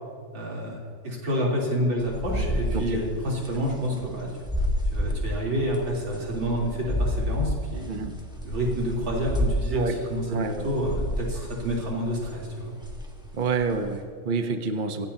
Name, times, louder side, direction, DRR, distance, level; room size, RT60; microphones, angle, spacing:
voice 1, 0.3-0.8 1.0-4.3 4.9-7.8 8.4-12.8, equal, 60° right, -4 dB, 4.5 m, -28 dB
sound 1, 2.0-9.8 10.4-12.6 12.8-14.0, equal, 5° right, 1.1 m, -30 dB
voice 2, 10.3-10.7 13.3-15.1, right 4 dB, 45° right, 6 dB, 0.6 m, -28 dB
24.0 x 17.0 x 2.9 m, 2.1 s
omnidirectional pair, 2.4 m